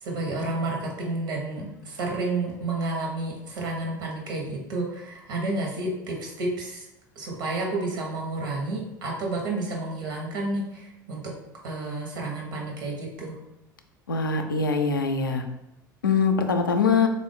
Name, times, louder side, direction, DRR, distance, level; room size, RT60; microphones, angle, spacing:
voice 1, 0.0-6.9 7.2-11.2 11.6-13.4, right 2 dB, 75° right, 0 dB, 1.0 m, -30 dB
voice 2, 14.1-15.5 16.0-17.1, left 5 dB, 90° left, 5 dB, 0.4 m, -23 dB
3.6 x 2.5 x 3.5 m, 0.89 s
hypercardioid pair, 75°, 11 cm